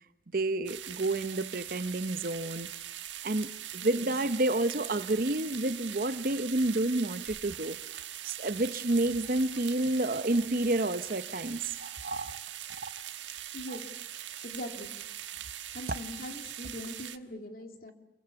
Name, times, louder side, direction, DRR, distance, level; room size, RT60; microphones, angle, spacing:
voice 1, 0.3-2.7 3.2-7.8 8.2-12.4 12.8-12.9 13.7-13.8 15.9-16.0, right 2 dB, 50° right, 0.9 m, -30 dB
sound 1, 0.7-17.2, right 11 dB, 80° right, 1.4 m, -42 dB
voice 2, 13.5-13.8 14.4-14.9 15.7-17.9, left 1 dB, 50° left, 3.0 m, -41 dB
29.5 x 23.0 x 7.1 m
head